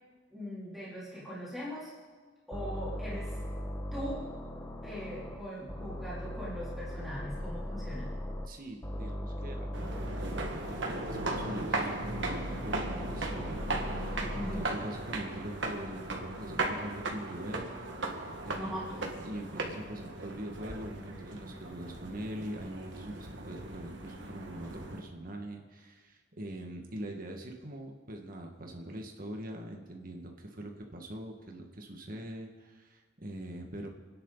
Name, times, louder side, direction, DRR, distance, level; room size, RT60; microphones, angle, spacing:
voice 1, 0.3-1.9 2.5-3.4 3.9-4.3 4.8-8.1 14.3-14.7 18.5-19.0, equal, ahead, -9 dB, 3.7 m, -40 dB
sound 1, 2.5-5.4 5.7-8.5 8.8-11.5 12.0-14.6, equal, 15° left, 1.3 m, -39 dB
voice 2, 8.5-17.7 18.4-33.9, right 1 dB, 50° right, 2 dB, 2.0 m, -43 dB
sound 2, 9.7-25.0, right 2 dB, 80° right, 2.0 m, -37 dB
29.0 x 10.0 x 4.2 m, 1.4 s
head